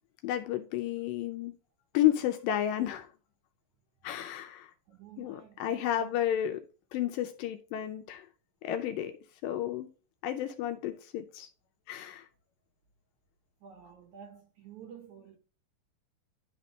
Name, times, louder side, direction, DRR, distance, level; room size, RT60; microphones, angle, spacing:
voice 1, 0.2-1.6 1.9-3.1 4.0-4.7 5.2-6.6 6.9-8.3 8.6-9.1 9.4-9.9 10.2-11.5 11.9-12.3, left 11 dB, 80° left, 2.1 m, -31 dB
voice 2, 4.9-6.2 13.6-15.4, right 8 dB, 70° right, 1.9 m, -51 dB
11.0 x 4.0 x 3.2 m
omnidirectional pair, 4.3 m